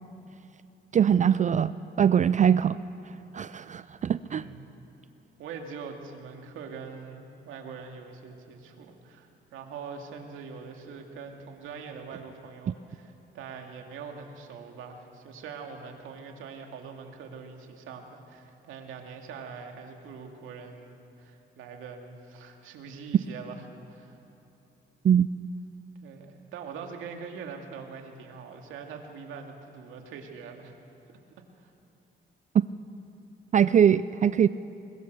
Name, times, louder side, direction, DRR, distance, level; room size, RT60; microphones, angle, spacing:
voice 1, 0.9-1.7 2.0-2.8 3.3-4.4 25.0-25.3 33.5-34.5, right 8 dB, 40° right, 15 dB, 0.4 m, -22 dB
voice 2, 4.2-4.7 5.4-24.2 26.0-30.7 31.6-31.7, right 5 dB, 85° right, 3 dB, 2.4 m, -43 dB
22.0 x 21.5 x 6.8 m, 2.8 s
cardioid pair, 90°, 20 cm